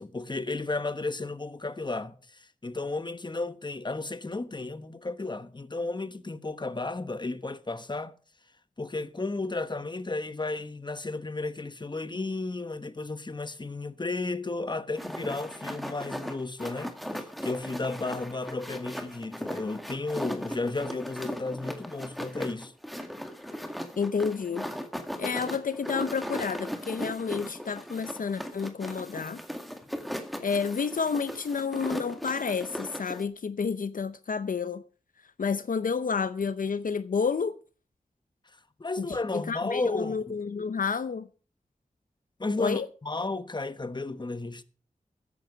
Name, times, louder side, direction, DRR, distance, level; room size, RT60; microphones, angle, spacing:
voice 1, 0.0-8.1 8.8-22.7 38.8-40.4 42.4-44.6, left 3 dB, 30° left, 1.1 m, -33 dB
sound 1, 15.0-33.2, equal, ahead, 2.0 m, -38 dB
voice 2, 24.0-24.7 25.2-29.4 30.4-34.8 35.4-37.5 39.0-39.1 39.3-41.3 42.6-42.9, left 5 dB, 70° left, 0.6 m, -30 dB
13.5 x 10.0 x 5.1 m
wide cardioid pair, 65°, 14 cm